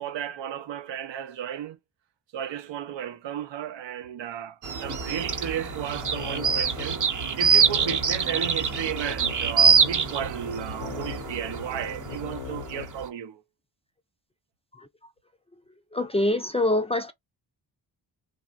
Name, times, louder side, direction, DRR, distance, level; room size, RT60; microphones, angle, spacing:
voice 1, 0.0-1.8 2.3-7.0 7.4-13.4, right 9 dB, 80° right, 0.6 m, -34 dB
sound 1, 4.6-13.0, right 6 dB, 45° right, 0.7 m, -25 dB
sound 2, 4.8-12.9, left 9 dB, 90° left, 0.6 m, -41 dB
voice 2, 15.9-17.1, left 1 dB, 15° left, 0.3 m, -25 dB
3.2 x 2.1 x 2.4 m
cardioid pair, 80°, 43 cm